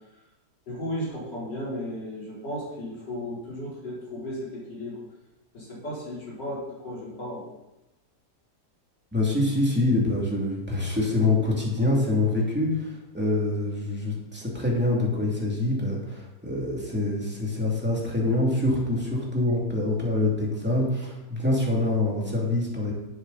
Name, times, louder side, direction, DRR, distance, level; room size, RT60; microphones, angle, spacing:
voice 1, 0.7-5.0 5.5-7.5 14.9-15.2, equal, 85° left, -6 dB, 4.5 m, -35 dB
voice 2, 9.1-22.9, left 2 dB, 5° right, -3 dB, 2.6 m, -25 dB
10.5 x 8.1 x 4.1 m, 0.98 s
omnidirectional pair, 1.8 m